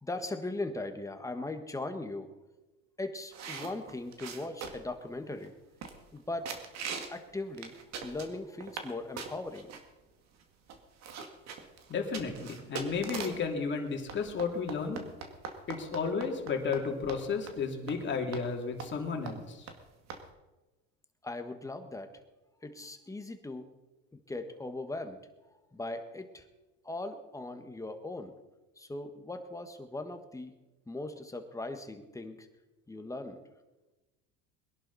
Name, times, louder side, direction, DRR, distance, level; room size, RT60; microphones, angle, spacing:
voice 1, 0.0-2.3 3.0-5.5 6.1-6.5 7.1-7.8 8.0-9.7 21.2-22.2 22.6-23.7 24.1-25.2 25.7-26.5 26.8-28.3 28.8-30.5 30.9-32.5 32.9-33.4, left 2 dB, 10° left, 7 dB, 1.5 m, -39 dB
sound 1, 3.3-4.9 5.4-5.5 5.8-6.2 6.4-7.2 7.5-8.9 9.2-9.8 10.4-10.5 10.7-13.5 14.1-16.8 17.1-17.2 17.5-17.6 17.9-18.0 18.3-18.4 18.8-19.0 19.3-19.4 19.7-19.8 20.1-20.2, right 6 dB, 50° right, 2.1 m, -41 dB
voice 2, 11.9-15.0 15.7-19.7, left 5 dB, 30° left, 2 dB, 2.9 m, -33 dB
21.5 x 11.0 x 4.2 m, 1.1 s
supercardioid pair, 115°, 35 cm